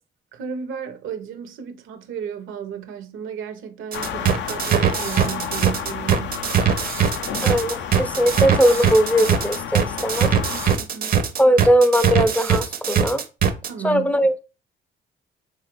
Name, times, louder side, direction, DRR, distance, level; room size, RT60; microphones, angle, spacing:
voice 1, 0.3-6.5 10.5-11.2 13.7-14.1, right 7 dB, 80° right, 0.7 m, -34 dB
sound 1, 3.9-10.8, left 8 dB, 65° left, 0.4 m, -31 dB
sound 2, 3.9-13.7, right 8 dB, 45° right, 0.5 m, -21 dB
voice 2, 7.4-10.3 11.4-13.2 13.8-14.4, equal, 5° left, 0.4 m, -19 dB
3.3 x 2.3 x 2.9 m
cardioid pair, 90°, 20 cm